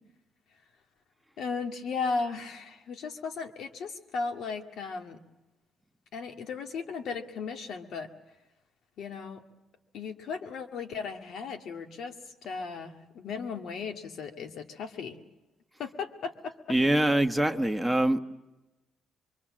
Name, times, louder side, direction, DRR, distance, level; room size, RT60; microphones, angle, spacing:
voice 1, 1.4-5.2 6.1-8.1 9.0-9.4 9.9-12.1 12.4-15.2 15.8-16.5, left 5 dB, 75° left, 2.1 m, -36 dB
voice 2, 16.7-18.2, right 1 dB, 5° right, 1.3 m, -24 dB
25.5 x 23.5 x 7.6 m
cardioid pair, 90°, 0 cm